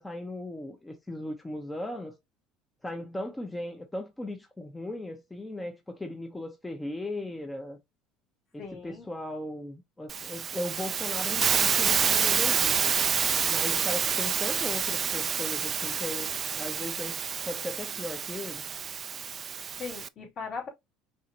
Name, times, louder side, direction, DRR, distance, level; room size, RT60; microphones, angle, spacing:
voice 1, 0.0-2.1 2.8-7.8 8.5-13.0 13.5-18.6, left 1 dB, 10° left, 0.8 m, -37 dB
voice 2, 8.6-9.1 19.8-20.7, left 5 dB, 55° left, 3.0 m, -38 dB
Hiss, 10.1-20.1, right 7 dB, 35° right, 0.3 m, -28 dB
5.5 x 3.1 x 2.9 m
supercardioid pair, 115°, 0 cm